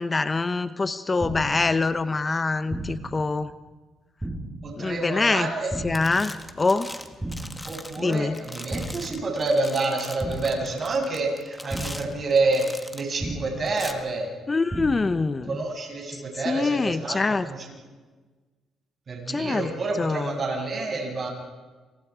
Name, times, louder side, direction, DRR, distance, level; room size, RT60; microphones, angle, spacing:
voice 1, 0.0-3.5 4.8-5.5 5.8-7.0 8.0-8.4 14.5-15.6 16.1-17.5 19.3-19.7 20.0-20.4, left 3 dB, 25° left, 12 dB, 0.8 m, -25 dB
sound 1, 1.2-1.7 2.7-3.2 4.2-4.7 5.7-6.2 7.2-7.7 8.7-9.2 10.2-10.7 11.7-12.2 13.2-13.7 14.7-15.2, right 1 dB, 10° right, 4.0 m, -33 dB
voice 2, 4.6-5.7 7.6-14.3 15.5-17.6 19.1-21.3, right 3 dB, 45° right, 0 dB, 7.6 m, -28 dB
sound 2, 5.4-5.7 5.9-13.2 13.7-13.9, left 1 dB, 10° left, 2.1 m, -41 dB
29.5 x 28.0 x 5.0 m, 1.4 s
cardioid pair, 90°, 0 cm